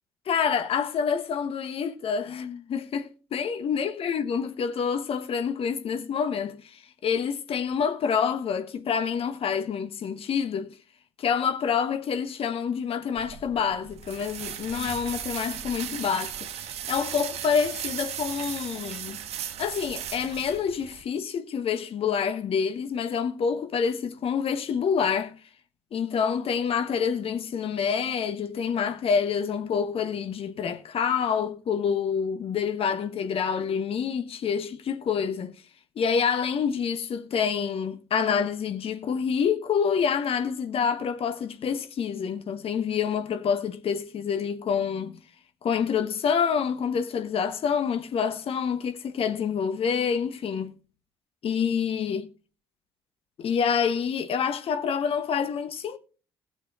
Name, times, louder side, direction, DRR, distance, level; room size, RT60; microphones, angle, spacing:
voice 1, 0.3-10.7 11.2-19.2 19.6-25.4 25.9-35.5 35.9-45.2 45.6-50.7 51.4-52.3 53.4-56.0, left 7 dB, 50° left, 1.2 m, -27 dB
sound 1, 13.2-21.0, right 9 dB, 55° right, 1.1 m, -37 dB
20.0 x 7.0 x 2.5 m
figure-of-eight pair, 45°, 13 cm